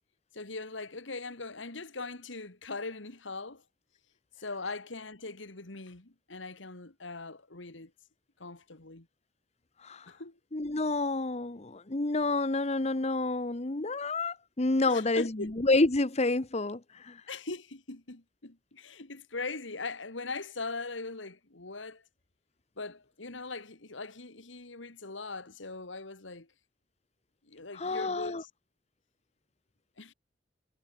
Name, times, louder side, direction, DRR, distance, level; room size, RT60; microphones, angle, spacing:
voice 1, 0.3-3.6 4.4-7.9 8.4-9.1 10.1-10.4 14.9-15.5 17.3-22.0 22.8-26.5 27.4-28.5 30.0-30.1, left 3 dB, 80° left, 2.3 m, -40 dB
voice 2, 10.5-15.3 15.6-17.2 27.7-28.4, left 2 dB, 35° left, 1.1 m, -29 dB
head